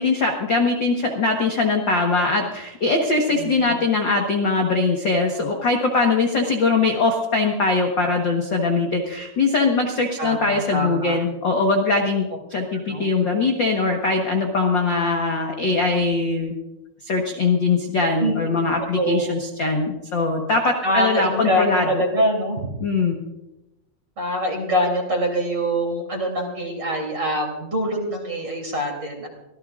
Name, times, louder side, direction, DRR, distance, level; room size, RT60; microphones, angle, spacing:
voice 1, 0.0-16.5 17.0-22.0 22.8-23.2, left 3 dB, 75° left, 2 dB, 1.0 m, -21 dB
voice 2, 3.3-3.8 10.2-11.2 12.9-13.1 18.2-19.4 20.8-22.7 24.2-29.3, equal, 30° right, 2 dB, 3.5 m, -24 dB
25.0 x 17.0 x 2.5 m, 0.93 s
omnidirectional pair, 4.5 m